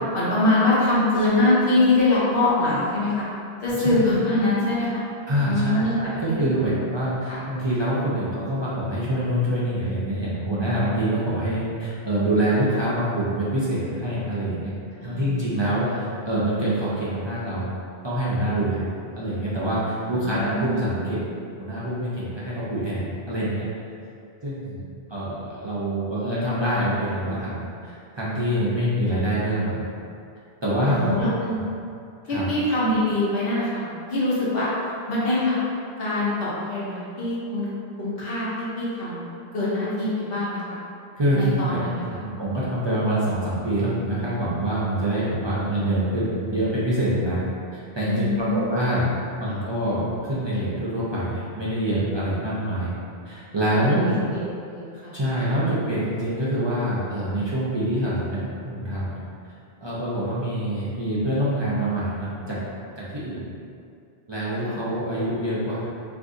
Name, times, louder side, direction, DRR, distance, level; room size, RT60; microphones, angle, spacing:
voice 1, 0.1-3.2 3.6-5.0 5.4-6.0 6.3-6.8 7.3-7.4 15.0-15.5 15.9-16.0 20.1-20.8 30.9-31.6 32.3-34.7 35.1-35.6 36.0-37.7 38.0-39.2 39.5-40.8 41.3-42.2 48.0-48.7 49.5-49.6 53.5-54.0 54.3-55.2 64.6-64.8, left 2 dB, 65° left, -8 dB, 1.0 m, -24 dB
voice 2, 5.3-14.7 15.0-17.7 18.0-18.9 19.2-21.2 21.6-23.7 24.4-24.8 25.1-29.9 30.6-31.1 31.5-31.6 32.3-32.5 41.2-41.8 42.2-47.4 47.7-49.1 49.4-52.9 53.3-54.1 55.1-59.2 59.8-62.6 63.0-63.5 64.3-65.8, right 1 dB, 40° right, -9 dB, 0.4 m, -25 dB
2.6 x 2.6 x 3.6 m, 2.4 s
omnidirectional pair, 1.1 m